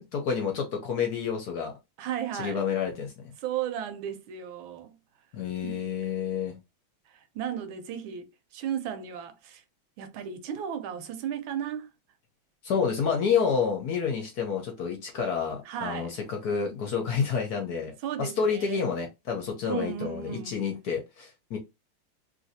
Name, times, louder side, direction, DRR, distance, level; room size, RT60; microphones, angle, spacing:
voice 1, 0.0-1.7 2.3-3.3 5.3-6.6 12.6-21.6, left 6 dB, 65° left, 1.0 m, -29 dB
voice 2, 2.0-2.6 3.4-4.9 5.6-5.8 7.1-9.6 10.0-11.9 15.6-16.1 18.0-18.8 19.7-20.6, right 9 dB, 80° right, 1.4 m, -35 dB
3.1 x 2.6 x 2.6 m
omnidirectional pair, 2.2 m